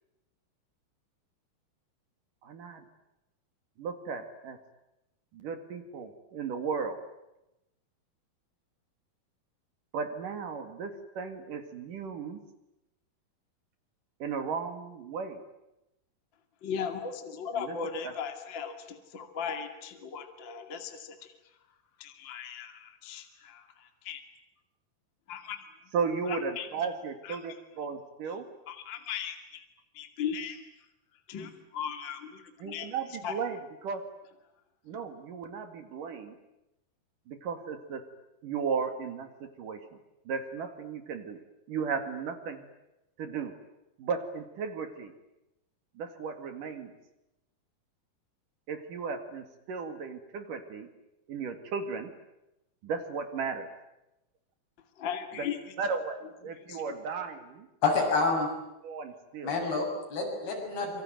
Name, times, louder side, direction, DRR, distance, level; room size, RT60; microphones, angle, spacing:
voice 1, 2.4-2.8 3.8-4.6 5.3-7.0 9.9-12.4 14.2-15.4 17.5-17.8 18.0-18.1 25.9-28.5 32.6-34.0 34.9-36.4 37.3-38.1 38.4-39.8 40.3-41.4 41.7-42.7 43.2-43.5 44.0-45.1 46.0-46.9 48.7-50.9 51.3-52.1 52.8-53.7 55.4-55.5 55.8-56.2 56.4-57.7 58.8-59.6, right 5 dB, 60° right, 8 dB, 3.7 m, -35 dB
voice 2, 16.6-21.3 22.0-24.2 25.3-25.6 26.3-26.7 27.3-27.4 28.7-29.6 29.9-30.6 31.3-32.9 33.2-33.3 55.0-55.6 56.7-56.8, left 7 dB, 35° left, 6 dB, 2.6 m, -37 dB
voice 3, 57.8-58.5 59.4-61.0, left 3 dB, 75° left, 1 dB, 8.9 m, -28 dB
26.5 x 24.0 x 9.3 m, 0.90 s
omnidirectional pair, 4.5 m